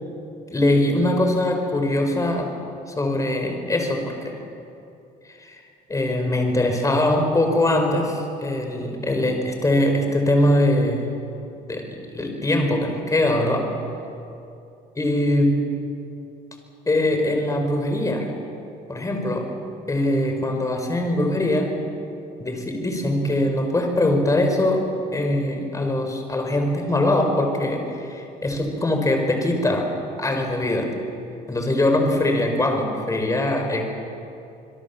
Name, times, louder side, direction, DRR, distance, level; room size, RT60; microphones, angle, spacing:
voice 1, 0.5-2.5 3.0-4.4 5.3-5.6 5.9-11.0 11.7-11.8 12.1-13.7 15.0-15.6 16.8-18.3 18.9-19.5 19.9-21.7 22.4-24.8 25.1-29.9 30.2-30.9 31.5-33.8, left 1 dB, 20° left, 4 dB, 4.9 m, -22 dB
26.5 x 22.5 x 7.2 m, 2.7 s
cardioid pair, 110°, 17 cm